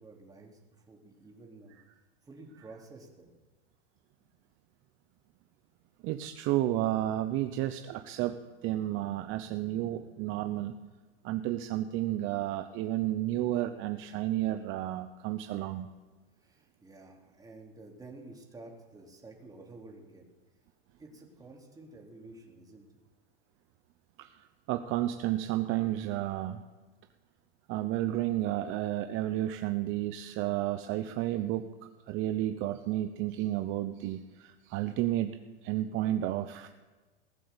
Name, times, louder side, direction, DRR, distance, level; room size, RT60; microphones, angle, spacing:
voice 1, 0.0-1.8 2.2-3.4 4.2-4.3 16.4-20.2 21.0-23.0, right 2 dB, 10° right, 0 dB, 3.3 m, -51 dB
voice 2, 6.0-10.7 11.2-15.9 24.2-26.6 27.7-36.7, right 14 dB, 40° right, 9 dB, 0.9 m, -32 dB
18.5 x 7.8 x 7.0 m, 1.3 s
hypercardioid pair, 110°, 30 cm